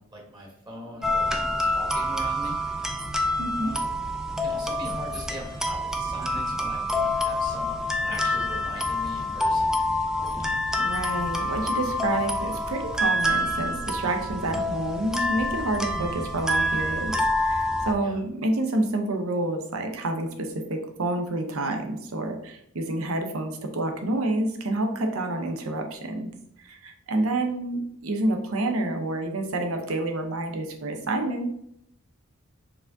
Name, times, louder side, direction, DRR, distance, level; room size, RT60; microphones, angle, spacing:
voice 1, 0.0-2.6 3.6-4.0 4.4-9.8 18.0-18.2, equal, 20° right, -1 dB, 1.1 m, -41 dB
sound 1, 1.0-17.9, left 1 dB, 5° right, 0.3 m, -27 dB
voice 2, 3.4-3.7 10.4-10.5 10.8-26.3 26.6-31.5, right 2 dB, 80° right, 4 dB, 0.7 m, -28 dB
4.7 x 3.5 x 2.6 m, 0.74 s
head